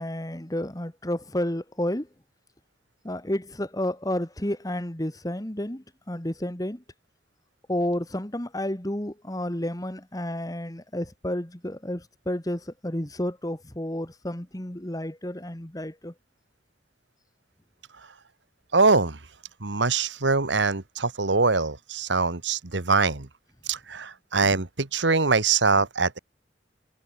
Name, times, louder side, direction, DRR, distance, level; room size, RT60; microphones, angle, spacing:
voice 1, 0.0-2.1 3.0-6.8 7.7-16.1, left 1 dB, 20° left, 1.8 m, -31 dB
voice 2, 18.7-19.2 19.6-23.3 23.7-26.2, right 4 dB, 80° right, 1.6 m, -23 dB
head